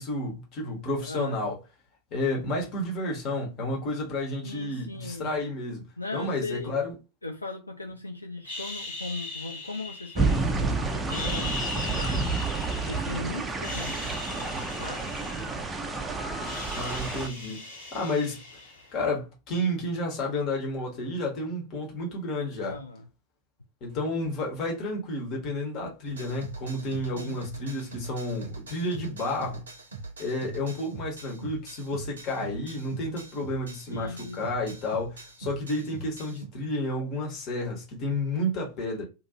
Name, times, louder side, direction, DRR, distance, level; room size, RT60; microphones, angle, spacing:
voice 1, 0.0-1.6 2.1-5.9 6.1-6.9 16.7-17.6 17.9-18.4 18.9-22.8 23.8-29.6 30.2-39.0, left 1 dB, 35° left, 1.1 m, -31 dB
voice 2, 1.0-1.4 4.4-5.4 6.0-6.8 7.2-15.2 22.7-23.0 27.1-27.7 33.9-34.4, left 2 dB, 85° left, 0.3 m, -38 dB
sound 1, 8.4-10.6 11.0-13.2 13.5-19.1, left 3 dB, 65° left, 1.5 m, -39 dB
sound 2, 10.1-17.3, right 3 dB, 10° right, 0.4 m, -30 dB
sound 3, 26.1-36.5, right 3 dB, 70° right, 0.6 m, -42 dB
2.5 x 2.5 x 2.8 m
figure-of-eight pair, 90°, 0 cm